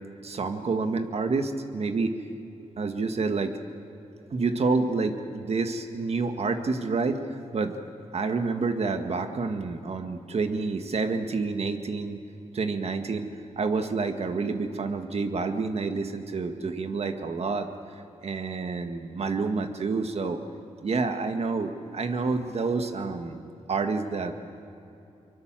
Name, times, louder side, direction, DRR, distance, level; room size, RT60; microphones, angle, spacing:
voice 1, 0.2-2.1 2.8-3.5 4.3-7.2 7.5-7.7 8.1-12.2 12.5-13.3 13.6-17.7 18.2-20.4 20.8-23.4 23.7-24.3, right 4 dB, 60° right, 7 dB, 1.9 m, -28 dB
24.0 x 23.0 x 7.6 m, 2.8 s
cardioid pair, 75°, 12 cm